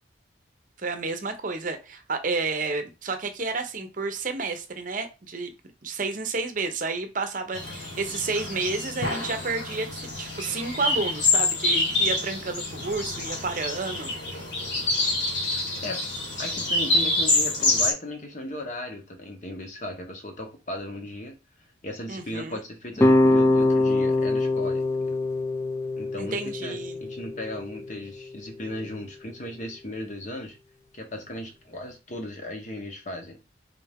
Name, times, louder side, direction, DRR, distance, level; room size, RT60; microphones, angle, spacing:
voice 1, 0.8-5.5 5.8-14.1 22.1-22.6 26.2-27.0, right 3 dB, 45° right, 0.7 m, -30 dB
sound 1, 7.5-17.9, left 2 dB, 75° left, 1.7 m, -27 dB
voice 2, 16.4-21.4 21.8-25.2 26.0-30.6 30.9-33.4, left 1 dB, 40° left, 1.0 m, -36 dB
sound 2, 23.0-28.1, left 2 dB, 15° left, 0.3 m, -23 dB
3.8 x 3.4 x 3.5 m
head